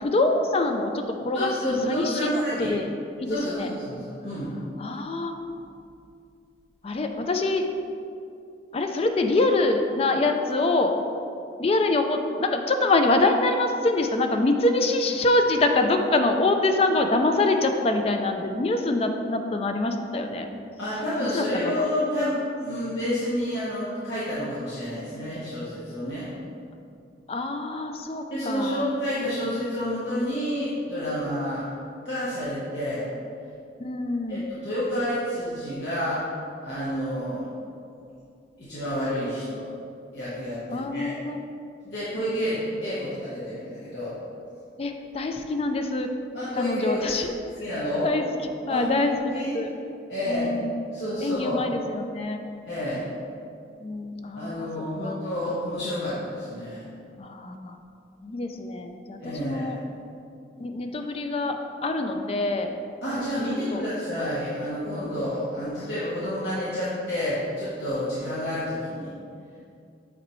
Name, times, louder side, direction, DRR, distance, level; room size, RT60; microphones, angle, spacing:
voice 1, 0.0-2.4 2.7-2.9 3.2-3.7 4.8-5.4 6.8-7.7 8.7-11.0 11.6-20.5 21.3-21.8 27.3-28.9 33.8-34.5 40.7-41.4 44.8-46.1 46.5-47.3 48.0-48.2 48.7-49.7 50.3-50.7 51.2-52.4 53.8-55.2 57.2-57.8 58.2-59.8 60.6-62.7 63.7-63.8 65.0-65.1, left 2 dB, 35° left, 5 dB, 0.3 m, -25 dB
voice 2, 1.3-2.7 3.3-4.5 20.8-26.3 28.3-31.7 32.0-33.0 34.3-36.2 36.6-37.5 38.6-39.6 40.1-41.2 41.8-44.2 46.3-47.1 47.6-48.1 48.7-49.6 50.1-50.5 50.9-51.6 52.7-53.0 54.3-56.9 59.2-59.7 63.0-69.1, equal, 75° left, -10 dB, 1.1 m, -29 dB
8.0 x 4.0 x 3.1 m, 2.5 s
head